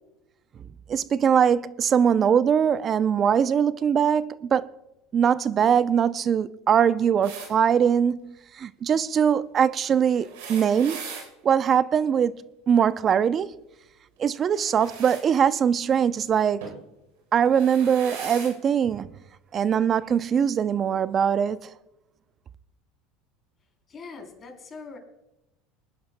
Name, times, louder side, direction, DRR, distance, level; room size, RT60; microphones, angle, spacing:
voice 1, 0.9-4.7 5.1-11.0 11.4-13.5 14.2-16.6 17.3-19.1 19.5-21.7, right 8 dB, 35° right, 0.5 m, -22 dB
sound 1, 7.2-7.5 10.1-11.3 14.5-15.2 16.6-16.8 17.4-18.5 19.6-19.7 20.9-21.0, right 5 dB, 85° right, 3.5 m, -39 dB
voice 2, 23.9-25.0, left 4 dB, 30° left, 3.5 m, -42 dB
24.5 x 10.0 x 2.2 m
supercardioid pair, 100°, 0 cm